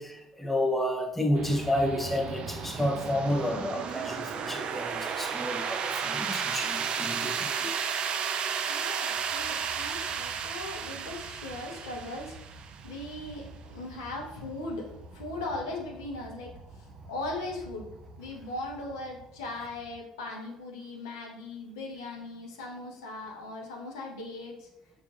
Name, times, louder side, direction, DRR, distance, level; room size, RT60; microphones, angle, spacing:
voice 1, 0.0-7.7, left 1 dB, 10° left, 0.6 m, -30 dB
sound 1, 1.3-20.0, right 6 dB, 50° right, 0.3 m, -35 dB
voice 2, 8.7-12.3 12.8-17.9 18.2-24.7, left 2 dB, 80° left, 0.7 m, -39 dB
5.8 x 2.5 x 2.4 m
hypercardioid pair, 60°, 2 cm